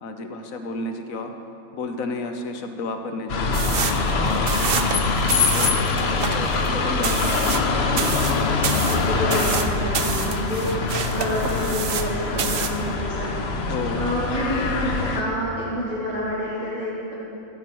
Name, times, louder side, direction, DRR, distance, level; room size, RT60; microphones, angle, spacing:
voice 1, 0.0-1.3 1.7-3.5 4.1-4.5 4.9-5.0 5.3-7.8 13.7-14.0, left 3 dB, 70° left, 5 dB, 1.3 m, -32 dB
sound 1, 3.3-15.2, left 3 dB, 55° left, 1.0 m, -24 dB
sound 2, 3.5-12.1 12.4-12.8, right 7 dB, 55° right, 0.7 m, -29 dB
voice 2, 8.9-13.5 13.9-17.1, equal, 25° left, -9 dB, 3.1 m, -28 dB
13.5 x 7.7 x 6.2 m, 2.8 s
omnidirectional pair, 1.5 m